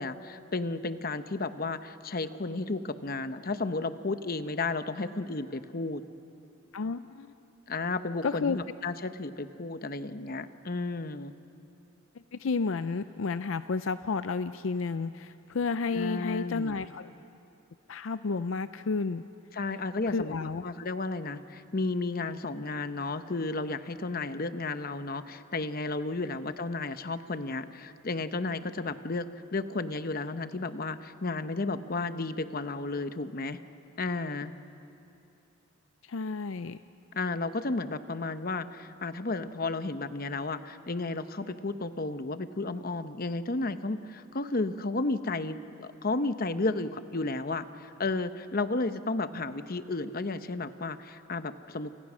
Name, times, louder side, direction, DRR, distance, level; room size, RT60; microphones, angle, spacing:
voice 1, 0.0-6.0 7.7-11.3 15.9-16.8 19.5-33.6 34.0-34.5 37.1-51.9, left 3 dB, 45° left, 11 dB, 0.9 m, -33 dB
voice 2, 6.7-7.3 8.2-8.6 12.3-17.1 17.9-19.2 20.1-20.6 36.0-36.8, left 4 dB, 70° left, 12 dB, 0.5 m, -31 dB
28.5 x 28.5 x 6.2 m, 2.8 s
head